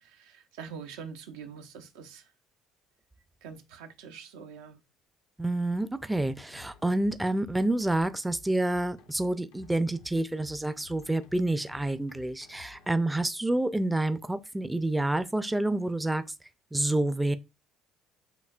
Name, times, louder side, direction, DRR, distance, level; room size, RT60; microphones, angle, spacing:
voice 1, 0.0-2.3 3.4-4.8, right 6 dB, 85° right, 0.6 m, -44 dB
voice 2, 5.4-16.2 16.7-17.4, right 1 dB, 10° right, 0.4 m, -28 dB
sound 1, 6.1-12.9, left 3 dB, 90° left, 0.7 m, -54 dB
6.6 x 2.6 x 2.4 m
supercardioid pair, 75°, 0 cm